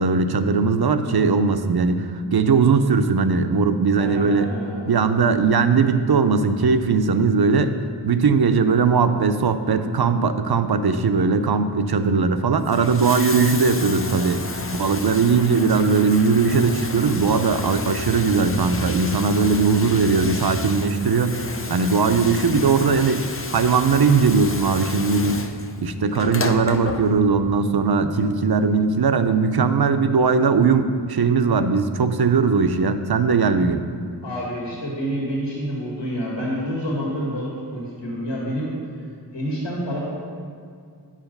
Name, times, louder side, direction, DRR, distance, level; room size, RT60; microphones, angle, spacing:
voice 1, 0.0-4.5 4.9-7.7 8.0-14.4 14.7-21.4 21.7-25.4 25.8-33.8, right 5 dB, 60° right, 9 dB, 0.6 m, -19 dB
voice 2, 4.0-4.9 34.2-38.7 39.3-40.0, equal, 80° left, -5 dB, 1.9 m, -28 dB
Bathtub (filling or washing), 12.5-27.5 28.6-28.7, left 2 dB, 30° left, 0.6 m, -31 dB
9.6 x 5.0 x 5.2 m, 2.2 s
wide cardioid pair, 45°, 43 cm